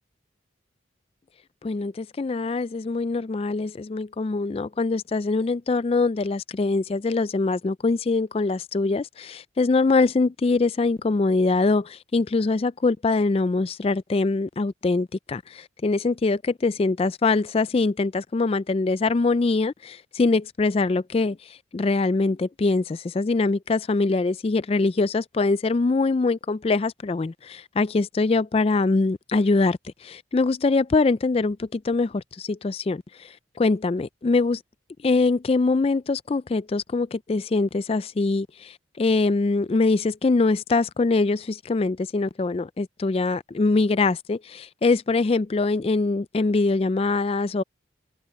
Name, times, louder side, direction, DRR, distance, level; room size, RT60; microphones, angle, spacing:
voice 1, 1.6-34.6 35.0-47.6, left 3 dB, 30° left, 0.3 m, -23 dB
head